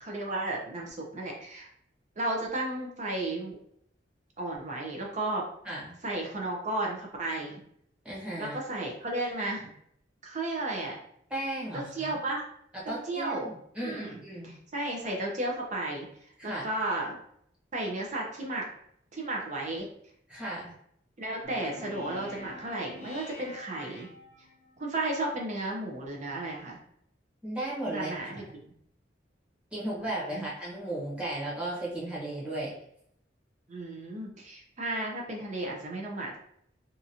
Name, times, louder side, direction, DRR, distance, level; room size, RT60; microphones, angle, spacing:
voice 1, 0.0-1.7 2.2-3.6 4.4-5.5 6.0-7.6 8.4-9.7 10.2-11.0 11.7-12.4 12.9-13.5 13.8-16.1 16.4-17.2 17.7-18.7 19.1-19.9 21.2-24.1 24.8-26.8 27.9-28.4 30.3-30.5 33.7-36.4, right 2 dB, 40° right, -1 dB, 0.7 m, -33 dB
voice 2, 5.6-6.0 8.0-8.6 11.3-12.2 12.7-14.6 16.4-16.7 20.3-20.7 27.4-28.1 29.7-32.7, right 1 dB, 5° right, -7 dB, 1.0 m, -35 dB
sound 1, 21.4-24.7, left 2 dB, 35° left, 0.7 m, -47 dB
2.9 x 2.5 x 2.7 m, 0.69 s
head